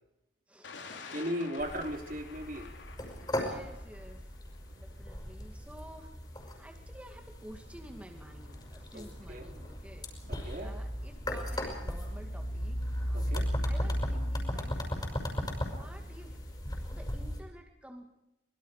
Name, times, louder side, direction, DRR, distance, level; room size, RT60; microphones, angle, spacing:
voice 1, 0.5-1.2 3.3-4.2 4.8-10.1 10.6-13.4 13.6-15.1 15.7-16.4 16.9-18.2, equal, 5° right, 3 dB, 2.2 m, -52 dB
Thunder, 0.6-16.9, left 4 dB, 90° left, 3.5 m, -55 dB
voice 2, 1.1-2.7 8.9-9.5 10.3-10.8 13.1-13.5, equal, 50° right, 4 dB, 3.2 m, -37 dB
sound 1, 1.6-17.4, equal, 25° left, 5.8 m, -36 dB
25.0 x 22.0 x 5.0 m, 0.91 s
head